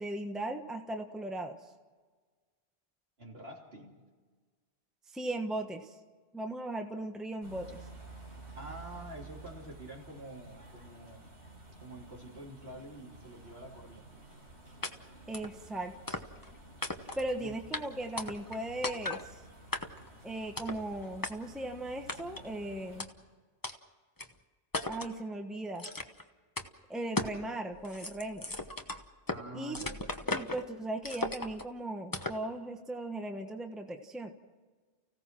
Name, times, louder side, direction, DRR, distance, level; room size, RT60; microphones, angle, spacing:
voice 1, 0.0-1.6 5.1-6.0 6.3-7.8 15.3-16.2 17.1-19.4 20.2-23.1 24.9-25.9 26.9-28.5 29.5-29.8 30.3-34.3, right 1 dB, ahead, 4 dB, 1.2 m, -38 dB
voice 2, 3.2-4.0 8.5-11.4 11.8-14.1 17.3-17.6 29.3-30.2, right 1 dB, 55° right, -1 dB, 3.6 m, -47 dB
sound 1, 7.4-23.0, right 2 dB, 80° right, 4.9 m, -52 dB
sound 2, 14.8-14.9 15.3-15.5 16.1-16.5 16.8-17.3 17.7-17.8 18.2-18.6 18.8-19.2 19.7-20.1 20.6-20.8 21.2-21.3 22.1-22.5 23.0-23.1 23.6-23.7 24.2-24.3 24.7-25.1 25.8-26.2 26.6-26.7 27.2-27.4 27.7-29.4 29.7-30.6 31.0-31.6 32.1-32.4, left 2 dB, 20° left, 1.1 m, -36 dB
30.0 x 16.5 x 6.1 m, 1.4 s
omnidirectional pair, 1.2 m